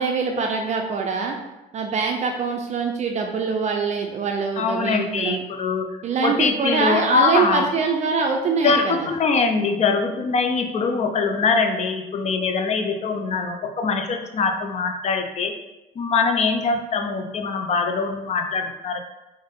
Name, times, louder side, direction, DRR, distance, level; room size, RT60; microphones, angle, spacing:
voice 1, 0.0-1.4 1.7-5.4 6.0-9.1, right 5 dB, 45° right, 2 dB, 0.4 m, -24 dB
voice 2, 4.6-5.8 6.2-7.6 8.6-15.5 16.0-19.0, left 4 dB, 40° left, 4 dB, 0.5 m, -23 dB
3.6 x 2.6 x 3.7 m, 1.0 s
cardioid pair, 110°, 17 cm